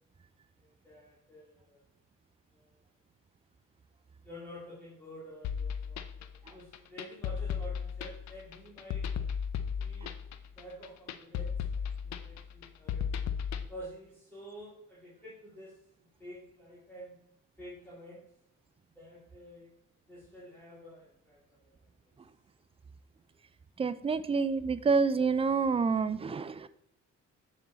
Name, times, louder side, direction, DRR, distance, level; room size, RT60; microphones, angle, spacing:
voice 1, 0.6-1.8 2.5-2.8 4.2-9.1 9.8-13.0 13.7-15.8 16.2-17.2 17.6-18.2 19.0-19.7 20.1-22.1, equal, 5° left, -8 dB, 2.6 m, -49 dB
sound 1, 5.4-13.7, left 7 dB, 65° left, 0.6 m, -35 dB
voice 2, 23.8-26.7, right 5 dB, 20° right, 14 dB, 0.3 m, -28 dB
6.9 x 3.7 x 4.1 m, 0.71 s
cardioid pair, 90°, 30 cm